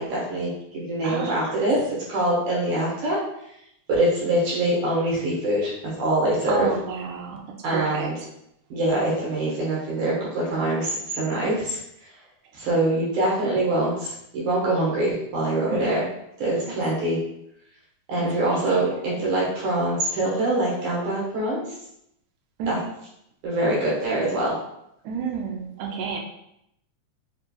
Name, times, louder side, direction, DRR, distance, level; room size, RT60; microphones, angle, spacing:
voice 1, 0.0-1.8 2.1-3.2 3.9-5.7 6.0-6.7 7.6-8.1 8.7-11.8 12.5-16.0 16.4-17.2 18.1-21.6 22.7-22.8 23.4-24.6, right 1 dB, 65° right, -6 dB, 2.4 m, -24 dB
voice 2, 1.0-1.6 6.5-8.1 15.7-16.0 16.7-16.8 18.1-19.2 22.6-22.8 25.0-26.2, right 5 dB, 80° right, 1 dB, 1.7 m, -32 dB
7.1 x 3.3 x 2.2 m, 0.79 s
omnidirectional pair, 4.0 m